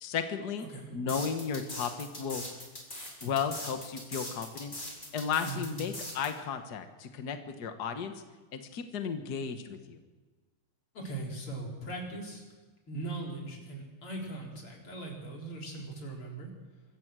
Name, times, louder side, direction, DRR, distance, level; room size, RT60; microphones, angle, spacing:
voice 1, 0.0-0.7 0.9-2.4 3.2-4.7 5.1-8.1 8.5-10.0, left 6 dB, 85° left, 7 dB, 0.8 m, -34 dB
sound 1, 1.1-6.3, left 1 dB, 15° left, 4.0 m, -41 dB
voice 2, 5.4-5.7 10.9-12.4 12.9-16.5, right 2 dB, 35° left, -1 dB, 4.9 m, -39 dB
24.5 x 15.0 x 7.6 m, 1.3 s
omnidirectional pair, 4.1 m